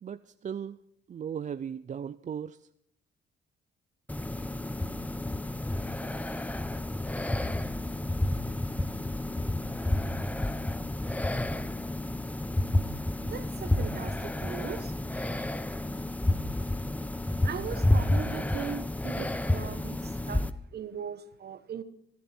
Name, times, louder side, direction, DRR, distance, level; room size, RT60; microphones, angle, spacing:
voice 1, 0.0-0.8 1.1-2.6, right 8 dB, 40° right, 13 dB, 0.5 m, -37 dB
sound 1, 4.1-20.5, left 1 dB, 5° left, 0.7 m, -30 dB
voice 2, 13.2-15.5 17.4-20.5 20.7-21.8, right 8 dB, 55° right, 12 dB, 1.3 m, -39 dB
27.5 x 10.5 x 4.4 m, 0.71 s
cardioid pair, 90°, 20 cm